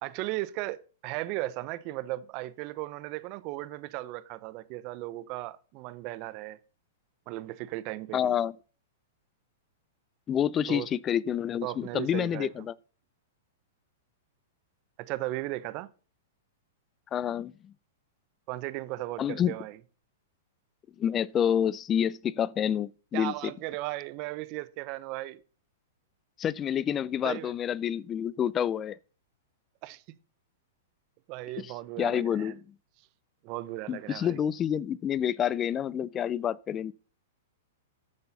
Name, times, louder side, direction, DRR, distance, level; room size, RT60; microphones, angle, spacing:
voice 1, 0.0-6.6 7.3-8.3 10.7-10.9 11.6-12.7 15.0-15.9 18.5-19.8 23.1-25.4 27.2-27.5 29.8-30.2 31.3-32.5 33.4-34.3, right 17 dB, 45° right, 0.7 m, -36 dB
voice 2, 8.1-8.5 10.3-12.7 17.1-17.7 19.2-19.5 21.0-23.5 26.4-29.0 31.6-31.7 32.0-32.6 33.9-36.9, left 9 dB, 25° left, 0.4 m, -28 dB
9.7 x 6.9 x 4.1 m
hypercardioid pair, 120°, 0 cm